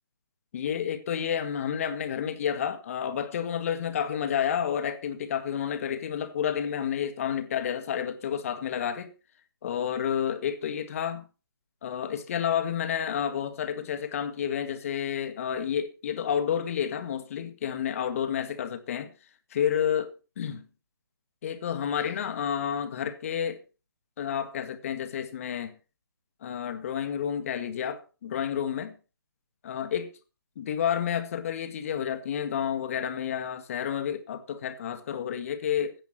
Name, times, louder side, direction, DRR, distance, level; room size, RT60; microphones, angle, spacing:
voice 1, 0.5-9.1 9.6-11.2 11.8-19.1 19.5-20.7 21.4-23.6 24.2-25.7 26.4-29.0 29.6-30.1 30.6-36.0, left 8 dB, 35° left, 1.9 m, -30 dB
16.5 x 10.0 x 4.5 m
figure-of-eight pair, 140°, 13 cm